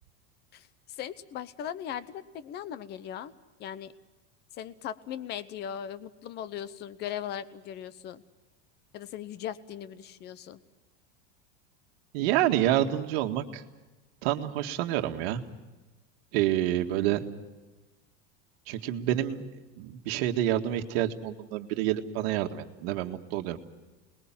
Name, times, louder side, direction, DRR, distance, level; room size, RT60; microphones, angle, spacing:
voice 1, 0.5-3.3 3.6-3.9 4.6-8.2 8.9-10.6, left 10 dB, 30° left, 15 dB, 0.9 m, -38 dB
voice 2, 12.1-13.6 14.2-15.4 16.3-17.3 18.7-19.4 19.8-23.6, right 13 dB, 60° right, 6 dB, 1.9 m, -28 dB
27.5 x 21.0 x 7.5 m, 1.2 s
supercardioid pair, 165°, 35 cm